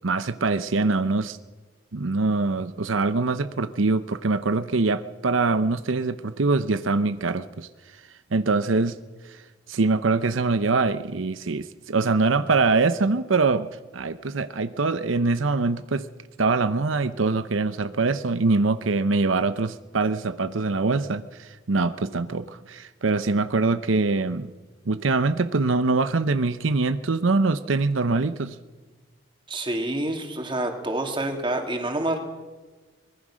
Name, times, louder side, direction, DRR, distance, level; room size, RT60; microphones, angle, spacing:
voice 1, 0.0-1.4 1.9-7.7 8.3-9.0 9.2-9.4 9.7-13.7 13.9-16.1 16.4-24.5 24.9-28.6, right 3 dB, 85° right, 12 dB, 0.8 m, -23 dB
voice 2, 29.5-32.2, right 1 dB, 25° right, 3 dB, 2.9 m, -27 dB
24.5 x 21.0 x 6.3 m, 1.3 s
head